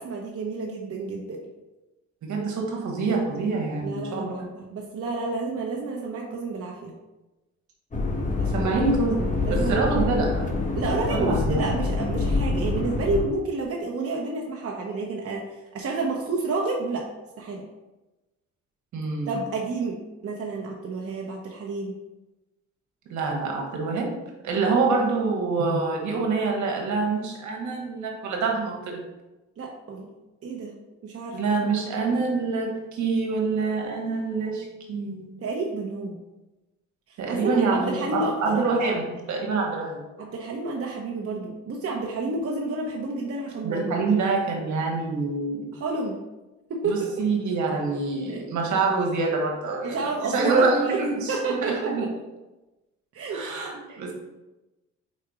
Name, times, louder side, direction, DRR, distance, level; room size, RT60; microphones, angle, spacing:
voice 1, 0.0-1.4 3.8-6.9 8.4-8.7 9.4-9.8 10.7-17.1 17.4-17.7 19.3-21.9 29.6-30.1 30.4-30.7 31.0-31.7 35.4-36.2 37.1-38.5 40.2-43.9 45.7-46.2 46.7-47.0 48.3-48.6 49.8-51.0 51.3-52.1 53.1-53.4, right 3 dB, 50° right, -1 dB, 1.0 m, -30 dB
voice 2, 2.2-4.5 8.5-10.5 11.1-11.7 18.9-19.3 23.1-24.2 24.4-29.1 31.3-35.3 37.2-40.0 43.6-45.7 46.8-50.0 50.3-52.1 53.3-54.1, right 4 dB, 70° right, 1 dB, 1.6 m, -26 dB
sound 1, 7.9-13.2, left 3 dB, 25° left, 1.3 m, -26 dB
4.9 x 4.3 x 4.9 m, 1.1 s
cardioid pair, 90°, 30 cm